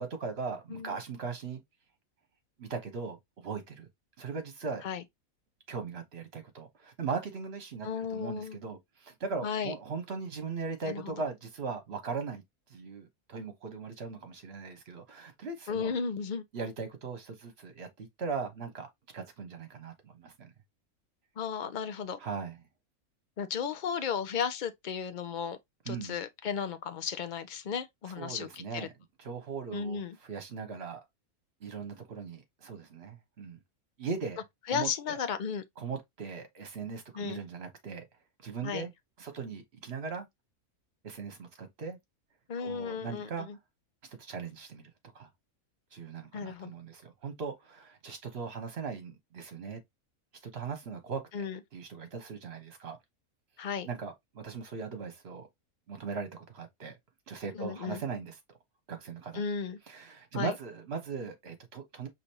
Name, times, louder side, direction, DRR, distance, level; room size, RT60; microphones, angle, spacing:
voice 1, 0.0-1.6 2.6-3.9 4.2-4.8 5.7-12.4 12.7-15.9 16.5-18.9 19.1-20.5 22.2-22.6 25.9-26.2 28.2-28.9 29.2-31.0 31.6-33.6 34.0-34.4 34.7-35.2 35.8-38.0 38.4-38.9 39.2-40.3 41.0-42.0 42.6-43.5 44.1-45.3 45.9-49.8 50.5-51.4 51.7-53.0 53.8-55.5 55.9-56.9 57.3-58.3 58.9-59.4 59.9-62.1, right 5 dB, 45° right, 1.4 m, -39 dB
voice 2, 7.8-8.6 9.4-9.7 10.9-11.1 15.7-16.4 21.4-22.2 23.4-25.6 25.9-28.9 29.7-30.2 34.7-35.6 37.1-37.4 38.6-38.9 42.5-43.6 46.3-46.7 51.3-51.6 53.6-53.9 57.5-58.0 59.3-59.8 60.3-60.6, left 6 dB, 55° left, 0.5 m, -34 dB
5.1 x 3.3 x 2.9 m
omnidirectional pair, 1.5 m